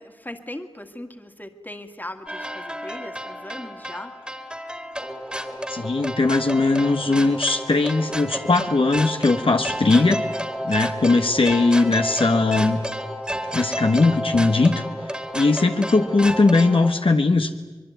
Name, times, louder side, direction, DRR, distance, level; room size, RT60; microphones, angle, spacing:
voice 1, 0.0-4.1, left 1 dB, 20° left, 6 dB, 2.1 m, -38 dB
sound 1, 2.3-16.9, equal, 10° right, 2.3 m, -31 dB
voice 2, 5.7-10.2 10.6-12.8 13.5-14.8 15.1-17.5, left 3 dB, 65° left, 5 dB, 1.4 m, -19 dB
24.5 x 22.0 x 9.3 m, 1.2 s
wide cardioid pair, 55°, 10 cm